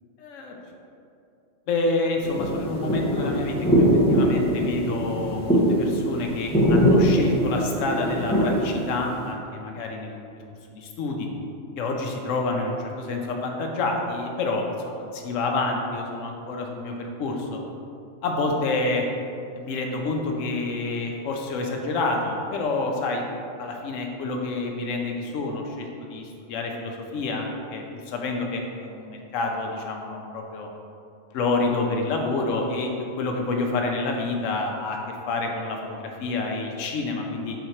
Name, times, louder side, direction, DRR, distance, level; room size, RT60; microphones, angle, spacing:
voice 1, 0.2-0.6 1.7-10.2 10.7-11.3 11.8-17.6 18.2-19.0 19.6-23.2 23.6-30.7 31.3-35.0 35.3-37.5, left 3 dB, 75° left, 2 dB, 0.9 m, -28 dB
sound 1, 2.2-9.3, equal, 5° left, 0.6 m, -22 dB
3.9 x 2.8 x 4.4 m, 2.6 s
omnidirectional pair, 1.3 m